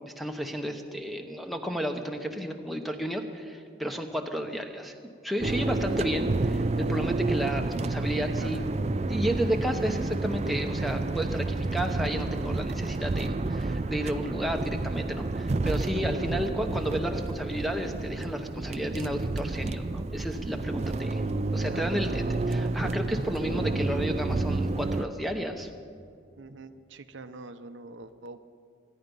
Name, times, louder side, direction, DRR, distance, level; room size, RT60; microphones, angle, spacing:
voice 1, 0.0-4.9 5.2-8.6 9.1-21.2 21.5-25.7, equal, ahead, 3 dB, 0.9 m, -32 dB
sound 1, 5.4-25.0, right 2 dB, 35° right, 0.4 m, -30 dB
voice 2, 8.1-8.7 15.9-16.5 21.7-22.5 22.8-23.0 26.4-28.4, right 3 dB, 80° right, 9 dB, 0.7 m, -44 dB
23.5 x 10.0 x 5.4 m, 2.5 s
head